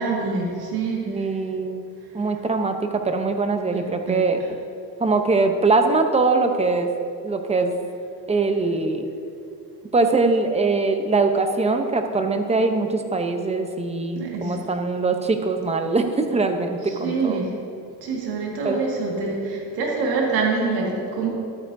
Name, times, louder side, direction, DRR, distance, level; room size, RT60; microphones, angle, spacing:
voice 1, 0.0-1.0 3.7-3.8 4.1-4.2 14.2-14.6 16.8-17.4 18.0-21.3, right 4 dB, 80° right, -2 dB, 1.9 m, -25 dB
voice 2, 1.1-1.8 2.1-2.8 3.0-4.4 5.0-6.9 7.2-7.7 8.3-9.1 9.9-17.4 18.6-18.8, right 3 dB, 15° right, 6 dB, 0.7 m, -22 dB
12.5 x 9.3 x 2.6 m, 2.5 s
cardioid pair, 115°, 38 cm